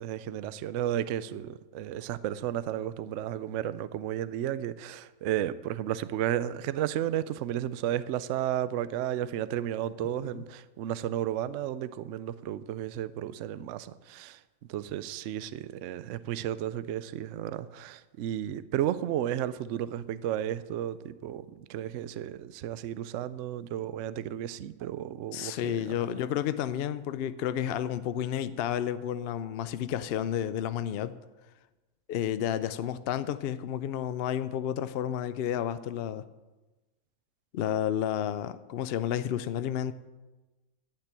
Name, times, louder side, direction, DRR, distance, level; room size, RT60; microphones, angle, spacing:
voice 1, 0.0-14.4 14.7-26.0, right 11 dB, 65° right, 0.8 m, -33 dB
voice 2, 10.0-10.4 25.3-31.1 32.1-36.3 37.5-39.9, left 10 dB, 70° left, 0.5 m, -31 dB
11.5 x 6.7 x 8.9 m
omnidirectional pair, 1.5 m